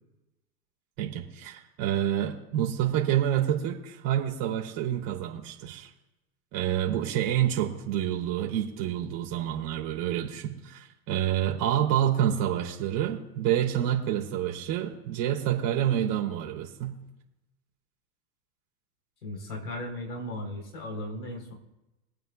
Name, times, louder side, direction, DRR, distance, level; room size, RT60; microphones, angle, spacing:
voice 1, 1.0-5.9 6.5-16.9, right 11 dB, 45° right, 0 dB, 3.0 m, -28 dB
voice 2, 19.2-21.5, left 1 dB, 85° left, 2 dB, 4.2 m, -36 dB
25.5 x 9.0 x 2.4 m, 0.96 s
hypercardioid pair, 115°, 48 cm